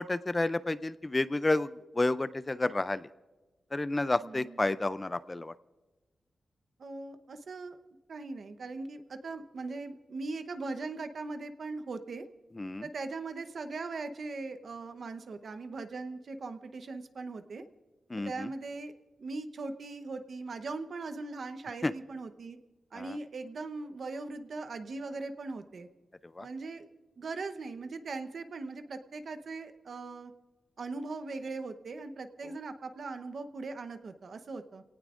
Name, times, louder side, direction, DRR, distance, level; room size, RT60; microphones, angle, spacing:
voice 1, 0.0-3.0 3.7-5.5 12.6-12.9 18.1-18.5 21.8-21.9 22.9-23.1 26.4-26.5, left 2 dB, 20° left, 15 dB, 0.4 m, -30 dB
voice 2, 4.2-4.6 6.8-7.8 8.1-12.3 12.8-17.6 18.2-18.9 19.2-22.6 22.9-25.9 26.4-26.9 27.2-30.3 30.8-34.8, right 3 dB, 60° right, 9 dB, 0.9 m, -40 dB
27.5 x 18.0 x 2.5 m, 1.2 s
wide cardioid pair, 110°, 0 cm